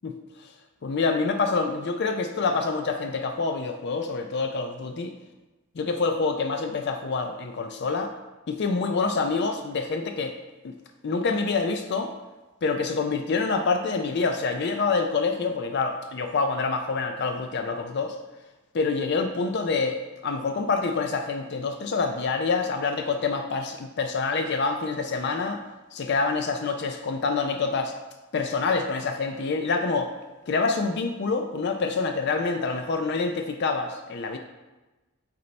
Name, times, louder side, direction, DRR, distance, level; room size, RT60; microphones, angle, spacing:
voice 1, 0.8-5.1 5.8-8.1 8.5-10.4 10.6-10.7 11.0-12.1 12.6-18.2 18.7-25.6 25.9-27.9 28.3-30.1 30.5-34.4, left 4 dB, 50° left, 6 dB, 0.4 m, -26 dB
8.3 x 4.1 x 3.2 m, 1.1 s
head